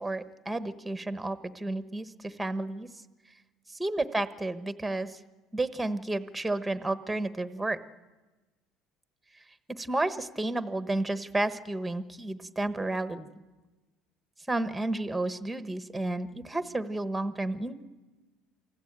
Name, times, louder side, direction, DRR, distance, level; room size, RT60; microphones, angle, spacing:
voice 1, 0.0-2.9 3.7-5.2 5.5-7.8 9.7-13.3 14.5-17.8, right 2 dB, 5° right, 11 dB, 1.0 m, -31 dB
28.0 x 20.0 x 8.8 m, 1.2 s
cardioid pair, 155°, 0 cm